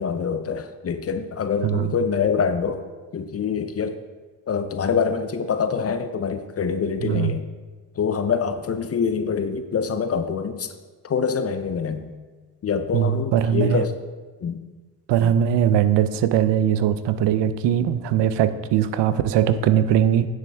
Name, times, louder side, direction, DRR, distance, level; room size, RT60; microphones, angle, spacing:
voice 1, 0.0-2.8 3.1-4.0 4.5-7.5 8.0-10.7 11.0-12.1 12.6-13.9 14.4-14.6, left 6 dB, 35° left, 9 dB, 0.6 m, -25 dB
voice 2, 7.0-7.3 12.9-13.8 15.1-20.3, right 10 dB, 65° right, 13 dB, 0.6 m, -20 dB
9.0 x 7.0 x 3.4 m, 1.3 s
cardioid pair, 85°, 45 cm